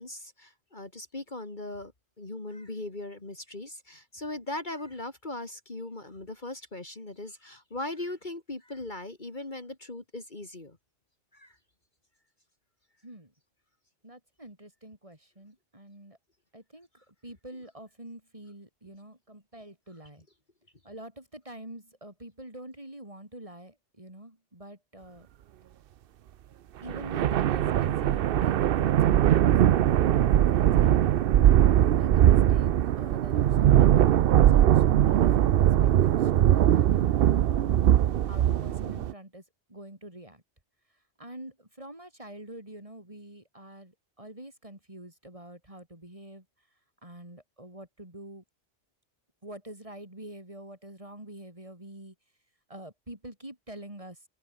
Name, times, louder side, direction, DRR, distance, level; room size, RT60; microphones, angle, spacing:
voice 1, 0.0-1.9 2.2-10.8 11.3-11.6, left 2 dB, 40° left, 2.8 m, -39 dB
voice 2, 14.0-16.2 16.5-20.3 20.8-25.3 26.8-31.0 31.8-37.9 38.3-39.4 39.7-40.4 41.2-46.4 47.0-48.4 49.4-52.2 52.7-54.2, right 1 dB, 30° right, 5.2 m, -46 dB
sound 1, 26.9-39.1, right 11 dB, 60° right, 0.7 m, -21 dB
omnidirectional pair, 1.2 m